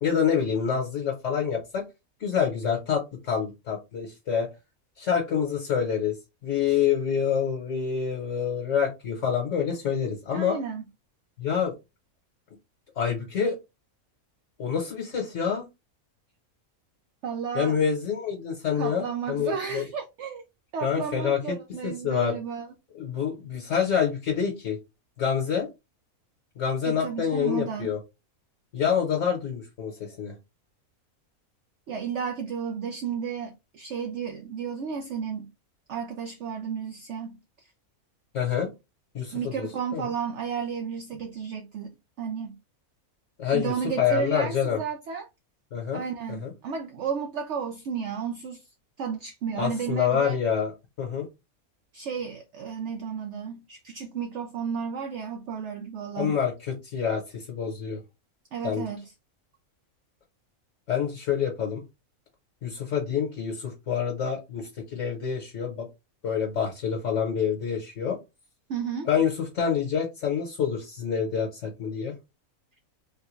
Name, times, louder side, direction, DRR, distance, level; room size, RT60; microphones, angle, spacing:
voice 1, 0.0-1.8 2.2-4.5 5.0-6.2 6.4-10.6 11.4-11.7 13.0-13.6 14.6-15.6 17.5-19.8 20.8-21.6 21.8-22.3 22.9-24.8 25.2-25.7 26.6-28.0 28.7-30.3 38.3-38.7 39.1-39.7 39.9-40.0 43.4-44.8 45.7-46.5 49.6-50.7 51.0-51.3 56.2-56.5 56.8-58.0 58.6-58.8 60.9-61.8 62.6-65.9 66.2-68.2 69.1-72.1, left 7 dB, 60° left, 1.2 m, -27 dB
voice 2, 10.3-10.8 17.2-17.8 18.8-20.4 20.7-22.7 26.8-28.0 31.9-35.5 35.9-37.4 39.3-42.6 43.5-45.3 45.9-48.6 49.0-50.4 51.9-56.4 58.5-59.1 68.7-69.1, right 7 dB, 65° right, 0.7 m, -33 dB
3.6 x 2.2 x 3.0 m
omnidirectional pair, 1.5 m